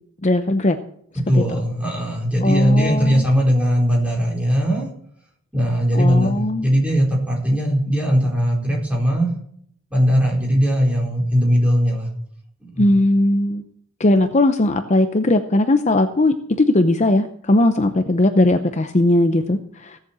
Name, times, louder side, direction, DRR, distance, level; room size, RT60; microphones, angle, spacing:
voice 1, 0.2-0.8 2.4-3.2 5.9-6.7 12.8-13.6 14.0-20.0, left 1 dB, 35° left, 8 dB, 0.7 m, -18 dB
voice 2, 1.1-4.9 5.5-9.3 9.9-12.1 12.6-12.8, equal, 5° right, -2 dB, 4.7 m, -19 dB
17.0 x 7.5 x 7.5 m, 0.66 s
head